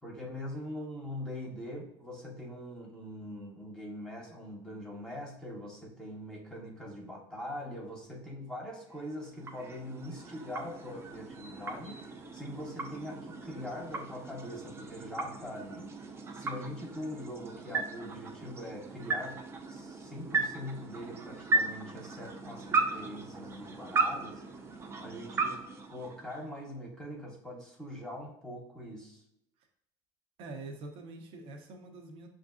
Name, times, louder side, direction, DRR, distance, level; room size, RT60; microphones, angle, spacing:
voice 1, 0.0-15.9 16.3-19.4 19.7-24.4 25.0-29.2, left 1 dB, 5° left, -2 dB, 0.8 m, -42 dB
sound 1, 8.9-26.7, right 3 dB, 25° right, 0.4 m, -36 dB
voice 2, 30.4-32.3, right 2 dB, 60° right, 3 dB, 0.7 m, -45 dB
6.2 x 2.5 x 2.4 m, 0.78 s
supercardioid pair, 125°, 11 cm